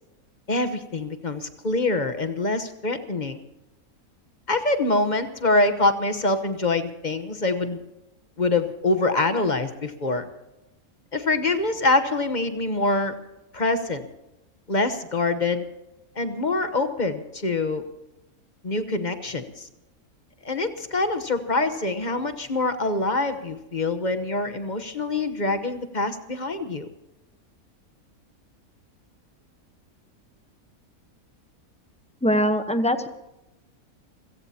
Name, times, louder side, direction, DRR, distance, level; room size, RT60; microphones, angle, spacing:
voice 1, 0.5-3.4 4.5-7.8 8.4-10.3 11.1-13.2 13.5-14.1 14.7-15.6 16.2-17.8 18.6-19.7 20.4-26.9, left 2 dB, 35° left, 9 dB, 1.1 m, -25 dB
voice 2, 32.2-33.1, equal, 5° left, 8 dB, 0.8 m, -22 dB
29.0 x 17.0 x 2.9 m, 0.94 s
omnidirectional pair, 1.5 m